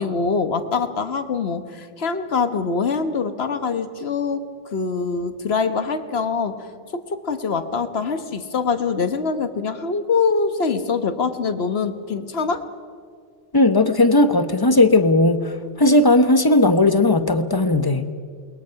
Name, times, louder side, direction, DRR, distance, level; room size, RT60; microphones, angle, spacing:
voice 1, 0.0-4.4 4.7-6.6 6.9-12.6, left 5 dB, 55° left, 9 dB, 1.4 m, -24 dB
voice 2, 13.5-18.1, left 2 dB, 20° left, 9 dB, 0.9 m, -16 dB
28.5 x 21.5 x 5.8 m, 2.2 s
omnidirectional pair, 1.3 m